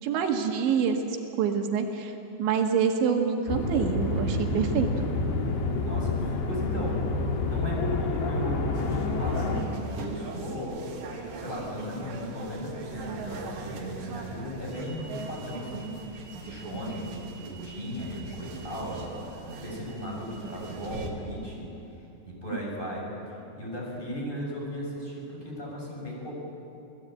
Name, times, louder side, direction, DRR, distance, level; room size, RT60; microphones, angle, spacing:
voice 1, 0.0-2.1 2.4-4.9, right 6 dB, 90° right, 3 dB, 4.1 m, -26 dB
sound 1, 3.5-9.6, left 3 dB, 80° left, 4.6 m, -28 dB
voice 2, 5.8-7.0 7.4-21.7 22.3-26.3, left 1 dB, 10° left, -3 dB, 6.6 m, -37 dB
sound 2, 8.7-21.1, right 4 dB, 75° right, 4.5 m, -40 dB
28.5 x 19.0 x 9.1 m, 2.9 s
omnidirectional pair, 5.1 m